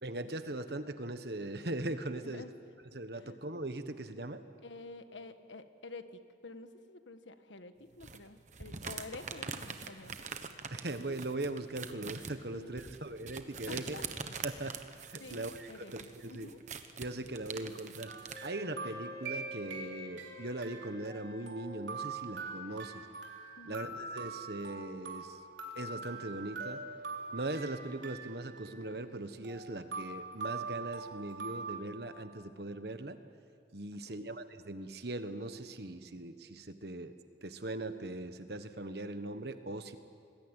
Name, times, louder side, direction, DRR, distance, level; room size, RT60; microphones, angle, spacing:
voice 1, 0.0-2.4 2.9-4.4 10.7-14.0 14.4-14.7 15.0-16.5 17.0-23.0 23.6-25.4 25.7-26.8 27.3-33.2 33.7-37.1 37.4-40.0, right 2 dB, 60° right, 9 dB, 1.4 m, -40 dB
voice 2, 4.6-10.2 12.5-12.7 13.7-14.1 15.2-16.6 23.6-23.9 34.1-34.3, left 3 dB, 85° left, 9 dB, 1.5 m, -49 dB
sound 1, 8.0-18.5, right 5 dB, 40° right, 1.3 m, -44 dB
sound 2, 18.1-20.3 20.6-31.8, right 4 dB, 85° right, 3.6 m, -43 dB
Wind instrument woodwind instrument, 18.3-22.5, left 4 dB, 20° left, 2.2 m, -51 dB
26.0 x 20.5 x 9.1 m, 2.4 s
head